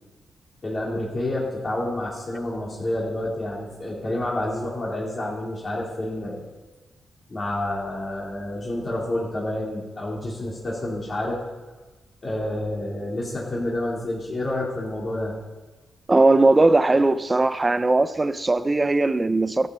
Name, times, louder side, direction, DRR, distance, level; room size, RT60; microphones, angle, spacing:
voice 1, 0.6-6.5 7.3-11.4 12.2-15.3, left 1 dB, 30° left, 3.9 m, -29 dB
voice 2, 16.1-19.7, right 2 dB, 20° right, 0.6 m, -19 dB
15.5 x 13.5 x 5.6 m
wide cardioid pair, 140°, 0 cm